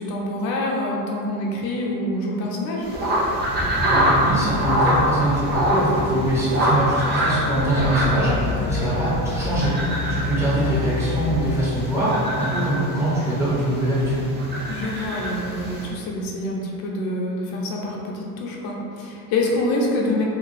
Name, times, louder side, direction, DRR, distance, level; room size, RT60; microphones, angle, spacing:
voice 1, 0.0-2.9 8.6-8.9 14.7-20.2, left 1 dB, 60° left, -2 dB, 0.7 m, -26 dB
sound 1, 2.8-15.9, equal, 25° right, 0.6 m, -25 dB
voice 2, 3.9-14.3, right 1 dB, 5° right, -11 dB, 1.1 m, -23 dB
sound 2, 4.0-11.6, left 3 dB, 25° left, 0.4 m, -29 dB
2.5 x 2.3 x 3.9 m, 2.6 s
cardioid pair, 140°, 41 cm